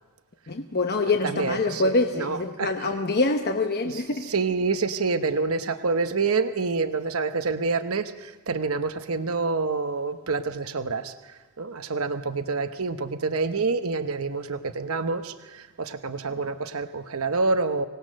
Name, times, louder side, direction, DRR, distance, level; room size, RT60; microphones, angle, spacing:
voice 1, 0.5-4.3, left 3 dB, 45° left, 5 dB, 1.0 m, -25 dB
voice 2, 1.2-2.9 3.8-17.8, right 4 dB, 65° right, 9 dB, 1.0 m, -27 dB
25.0 x 18.5 x 6.5 m, 1.2 s
head